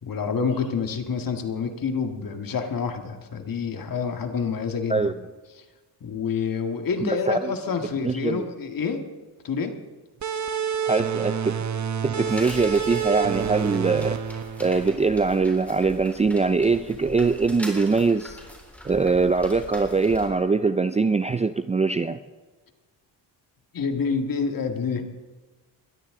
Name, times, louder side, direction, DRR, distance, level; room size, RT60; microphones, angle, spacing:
voice 1, 0.0-5.1 6.0-9.0 9.4-9.8 23.7-25.0, left 5 dB, 50° left, 6 dB, 1.9 m, -27 dB
voice 2, 7.0-7.5 8.0-8.4 10.9-11.6 12.0-14.2 14.6-18.4 18.8-22.2, right 4 dB, 15° right, 11 dB, 0.4 m, -22 dB
sound 1, 10.2-15.5, right 8 dB, 40° right, 1.0 m, -29 dB
sound 2, 12.3-20.3, equal, 5° left, 3.9 m, -42 dB
21.5 x 13.0 x 3.8 m, 1.3 s
cardioid pair, 95°, 43 cm